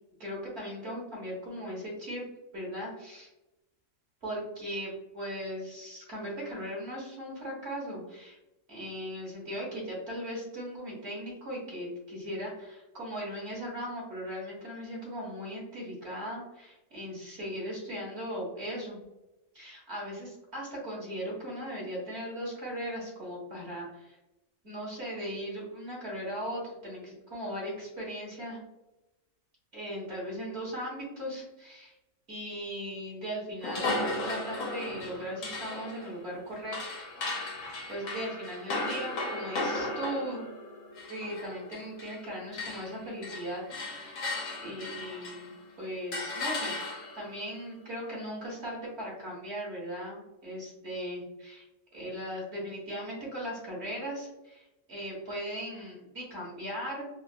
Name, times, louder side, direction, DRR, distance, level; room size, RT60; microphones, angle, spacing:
voice 1, 0.2-2.2 2.5-3.3 4.2-8.4 8.7-19.0 19.5-24.2 24.6-28.6 29.7-31.9 32.3-36.8 37.9-40.5 41.1-43.6 43.9-46.7 47.1-51.7 51.9-57.0, equal, 55° right, -5 dB, 1.6 m, -38 dB
sound 1, 33.6-42.3 42.5-45.6 46.1-47.3, left 2 dB, 85° left, 1.2 m, -36 dB
4.1 x 2.1 x 2.4 m, 0.98 s
omnidirectional pair, 1.4 m